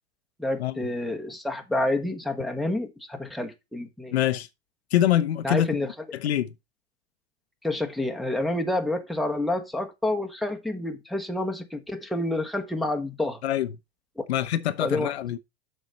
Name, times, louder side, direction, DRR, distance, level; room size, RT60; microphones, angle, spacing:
voice 1, 0.4-4.2 5.4-5.9 7.6-13.4 14.2-14.3 14.8-15.1, left 1 dB, ahead, 1.3 m, -28 dB
voice 2, 4.1-4.5 4.9-5.7 6.2-6.5 13.4-13.7 14.3-15.4, left 12 dB, 75° left, 0.8 m, -24 dB
7.9 x 6.5 x 4.1 m
hypercardioid pair, 105°, 32 cm